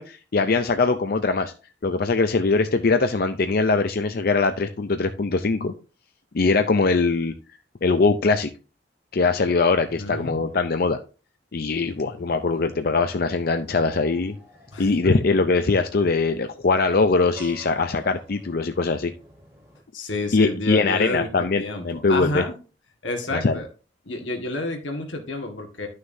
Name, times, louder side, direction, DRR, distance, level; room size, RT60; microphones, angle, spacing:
voice 1, 0.0-1.5 1.8-5.7 6.3-7.3 7.8-8.5 9.1-11.0 11.5-14.3 14.8-19.1 20.3-22.4 23.3-23.6, left 3 dB, 55° left, 8 dB, 0.5 m, -22 dB
voice 2, 9.9-10.4 14.7-14.9 19.9-22.6 23.0-23.7 24.1-25.9, left 2 dB, 85° left, 3 dB, 1.8 m, -29 dB
sound 1, 11.7-19.8, equal, 15° right, 3.7 m, -50 dB
11.0 x 6.4 x 2.7 m, 0.35 s
head